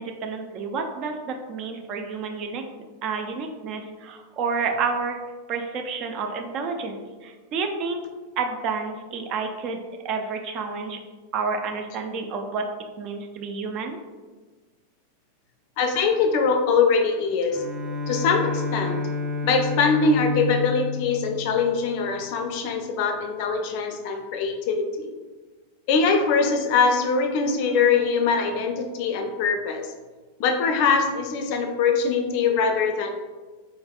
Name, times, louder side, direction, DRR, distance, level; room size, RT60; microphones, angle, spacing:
voice 1, 0.0-2.6 3.0-5.2 5.5-8.0 8.4-11.0 11.3-12.7 13.0-14.0, right 5 dB, 40° right, 4 dB, 0.4 m, -30 dB
voice 2, 15.8-17.6 18.1-19.0 19.4-25.1 25.9-29.9 30.4-33.1, left 5 dB, 45° left, 5 dB, 0.4 m, -22 dB
Bowed string instrument, 17.5-22.1, left 4 dB, 20° right, 1.2 m, -29 dB
4.2 x 3.3 x 2.3 m, 1.3 s
figure-of-eight pair, 90°, 0 cm